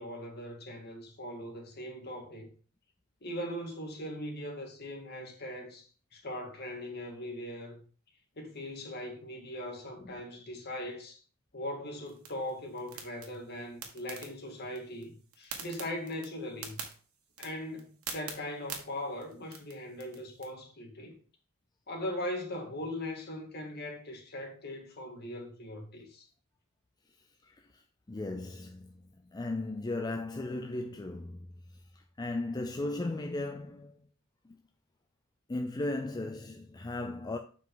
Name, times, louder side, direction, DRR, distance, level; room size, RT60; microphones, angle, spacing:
voice 1, 0.0-2.5 3.2-7.8 8.4-11.2 11.5-16.8 17.4-21.2 21.9-26.3, left 1 dB, 50° left, 1.9 m, -40 dB
sound 1, 12.0-20.5, right 6 dB, 80° right, 1.6 m, -47 dB
voice 2, 27.4-27.8 28.1-31.5 31.9-33.9 34.4-34.6 35.5-37.4, left 2 dB, 20° left, 0.5 m, -36 dB
7.5 x 5.5 x 3.9 m
head